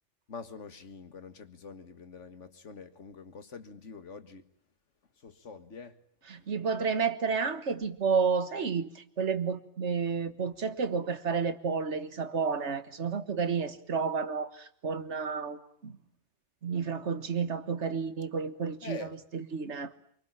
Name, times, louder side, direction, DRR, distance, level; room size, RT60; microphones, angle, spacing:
voice 1, 0.3-4.5 5.2-6.0 6.3-6.5 18.8-19.1, left 4 dB, 90° left, 2.0 m, -45 dB
voice 2, 6.3-16.0 16.6-19.9, right 5 dB, 75° right, 1.8 m, -31 dB
26.0 x 24.5 x 9.0 m
omnidirectional pair, 1.2 m